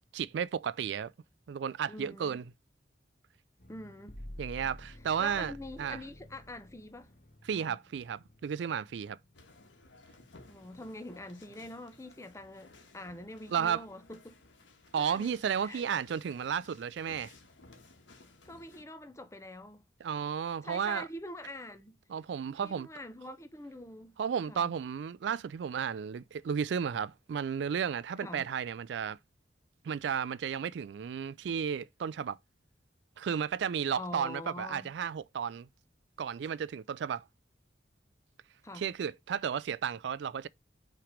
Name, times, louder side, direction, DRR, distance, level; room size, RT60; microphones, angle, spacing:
voice 1, 0.1-1.1 1.5-2.4 4.4-5.5 5.8-6.0 7.4-9.2 13.5-13.8 14.9-17.3 20.0-21.1 22.1-22.9 24.2-29.2 29.8-32.4 33.2-35.7 36.2-37.2 38.7-40.5, right 7 dB, 75° right, 0.3 m, -33 dB
voice 2, 1.9-2.4 3.7-4.2 5.2-7.1 7.6-7.8 10.5-14.4 15.0-15.3 15.6-15.8 18.4-19.8 20.6-22.0 22.6-24.2 24.5-24.7 28.2-28.4 33.9-34.9 38.6-38.9, left 1 dB, 15° left, 0.7 m, -45 dB
sound 1, 3.6-9.8, left 1 dB, 45° left, 1.0 m, -51 dB
sound 2, 9.3-18.8, left 3 dB, 85° left, 1.5 m, -58 dB
5.8 x 3.3 x 5.0 m
head